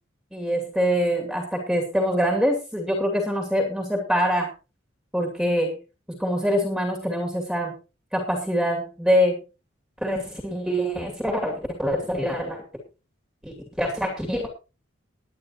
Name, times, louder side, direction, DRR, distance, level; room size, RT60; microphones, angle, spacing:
voice 1, 0.3-4.5 5.1-5.8 6.1-7.7 8.1-9.4 10.0-12.6 13.4-14.5, equal, ahead, 1 dB, 2.4 m, -24 dB
20.5 x 9.5 x 2.9 m, 0.30 s
head